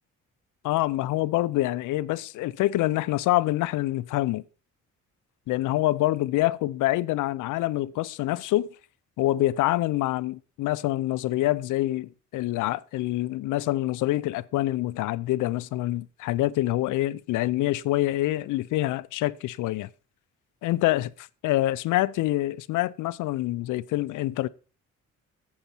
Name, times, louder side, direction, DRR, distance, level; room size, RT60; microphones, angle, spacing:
voice 1, 0.6-4.4 5.5-8.7 9.2-19.9 20.6-24.5, left 16 dB, 80° left, 0.5 m, -26 dB
8.7 x 7.1 x 4.3 m
cardioid pair, 90°, 30 cm